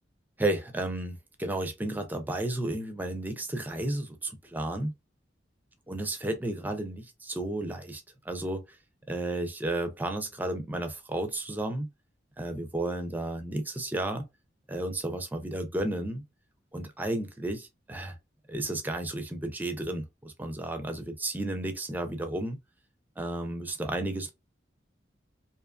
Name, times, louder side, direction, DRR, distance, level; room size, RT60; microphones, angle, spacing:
voice 1, 0.4-4.9 5.9-8.6 9.1-11.9 12.4-14.3 14.7-16.2 16.7-18.1 18.5-22.6 23.2-24.3, right 1 dB, 10° right, 0.4 m, -32 dB
2.7 x 2.4 x 2.3 m
head